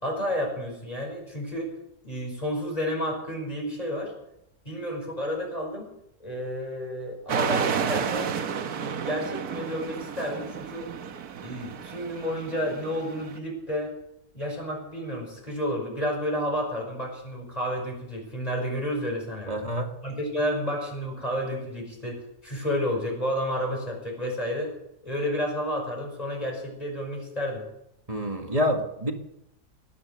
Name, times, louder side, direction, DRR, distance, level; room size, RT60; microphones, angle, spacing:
voice 1, 0.0-1.7 2.0-4.1 4.7-5.9 6.2-8.3 8.7-10.9 11.4-13.9 14.3-19.6 20.0-24.7 25.0-27.7, equal, 20° left, 0 dB, 5.6 m, -31 dB
sound 1, 7.3-13.4, right 7 dB, 70° right, 1.5 m, -31 dB
voice 2, 19.5-19.9 28.1-29.1, equal, 25° right, 4 dB, 1.9 m, -27 dB
19.5 x 11.0 x 6.5 m, 0.82 s
omnidirectional pair, 1.7 m